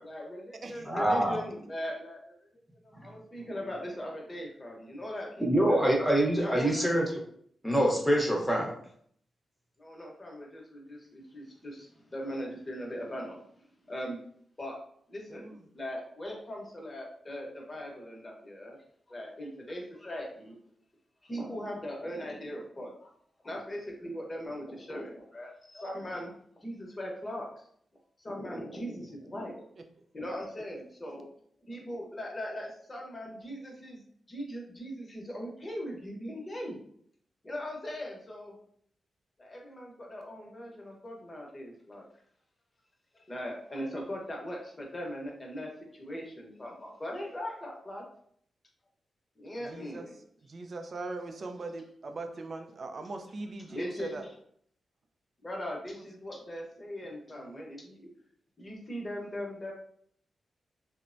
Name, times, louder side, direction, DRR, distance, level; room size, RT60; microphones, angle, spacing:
voice 1, 0.0-2.2 2.8-5.8 6.4-6.9 9.8-14.2 14.6-14.8 15.1-18.8 19.1-20.6 21.2-23.1 23.4-26.3 26.6-27.6 28.2-29.6 30.1-31.3 31.7-34.0 34.3-36.8 37.4-38.6 39.4-42.0 43.1-48.0 49.4-50.1 53.7-54.2 55.4-58.1 58.6-59.7, equal, 30° left, -1 dB, 0.9 m, -40 dB
voice 2, 0.8-1.4 2.9-3.0 5.4-7.0 7.6-8.7, right 1 dB, 5° left, -2 dB, 0.9 m, -25 dB
voice 3, 15.3-15.6 29.8-29.9 49.6-50.1 50.4-54.3 55.9-56.0 57.3-57.7, right 3 dB, 55° right, 6 dB, 0.4 m, -40 dB
3.1 x 2.1 x 2.5 m, 0.64 s
cardioid pair, 65°, 0 cm